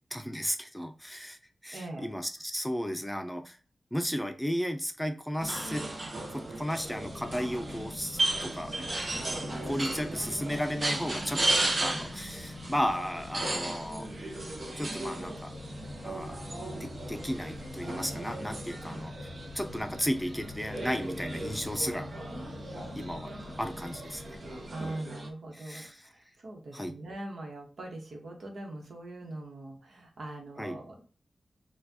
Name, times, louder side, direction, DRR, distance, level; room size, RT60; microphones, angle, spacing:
voice 1, 0.1-1.4 1.6-3.6 3.9-5.8 6.3-8.7 9.3-14.1 14.8-15.5 16.0-16.4 16.7-19.1 19.5-22.1 23.0-23.3 23.6-24.4 25.5-26.1 26.7-27.0 30.6-30.8, equal, 5° left, 6 dB, 0.6 m, -34 dB
voice 2, 1.7-2.1 24.7-31.0, right 2 dB, 80° right, 1 dB, 1.1 m, -42 dB
sound 1, 5.4-25.3, right 2 dB, 55° right, 0.9 m, -36 dB
sound 2, 6.8-24.8, left 3 dB, 75° left, 0.5 m, -45 dB
4.2 x 2.4 x 2.8 m, 0.39 s
cardioid pair, 55°, 0 cm